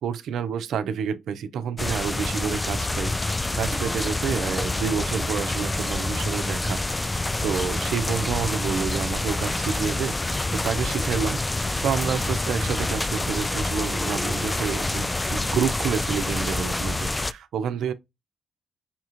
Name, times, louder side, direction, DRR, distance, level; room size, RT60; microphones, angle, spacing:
voice 1, 0.0-7.0 7.4-11.4 11.8-17.9, right 7 dB, 75° right, 0.6 m, -29 dB
sound 1, 1.8-17.3, left 2 dB, 20° left, 0.4 m, -27 dB
5.7 x 2.4 x 2.9 m
supercardioid pair, 50°, 0 cm